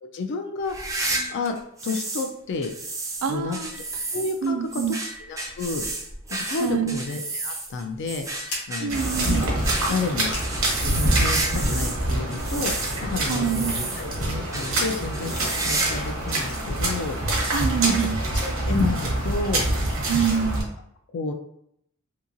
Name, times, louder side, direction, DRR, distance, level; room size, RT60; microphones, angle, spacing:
voice 1, 0.0-0.7 1.3-1.6 1.8-2.7 3.3-3.6 4.1-5.8 6.5-8.3 8.7-9.0 9.2-9.5 9.9-10.3 10.8-12.7 13.0-17.2 17.9-18.0 18.4-19.6 21.1-21.3, left 3 dB, 60° left, 6 dB, 0.4 m, -30 dB
sound 1, 0.6-2.3 2.6-12.0 12.3-14.2 14.5-14.8 15.1-16.0 16.3-16.4 17.2-17.3 18.5-18.6, right 2 dB, 15° right, 0.4 m, -31 dB
voice 2, 3.2-3.7 4.4-5.0 6.6-7.0 8.8-9.5 13.3-13.7 17.5-18.2 20.1-20.7, right 7 dB, 85° right, 8 dB, 0.3 m, -25 dB
sound 2, 5.3-11.3, left 2 dB, 80° left, 1.0 m, -42 dB
sound 3, 8.9-20.6, right 1 dB, 70° right, 0.8 m, -26 dB
2.8 x 2.7 x 2.5 m, 0.75 s
head